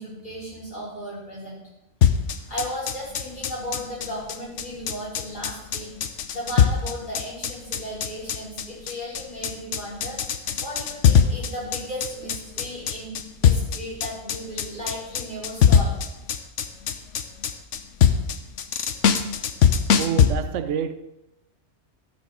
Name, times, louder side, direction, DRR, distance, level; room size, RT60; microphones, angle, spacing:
voice 1, 0.0-1.6 2.3-5.9 6.3-10.2 10.6-15.9, equal, 45° left, 4.9 m, -35 dB
sound 1, 2.0-20.3, left 8 dB, 85° left, 1.1 m, -21 dB
voice 2, 20.0-20.9, right 8 dB, 85° right, 1.0 m, -27 dB
13.0 x 6.5 x 4.9 m
omnidirectional pair, 1.2 m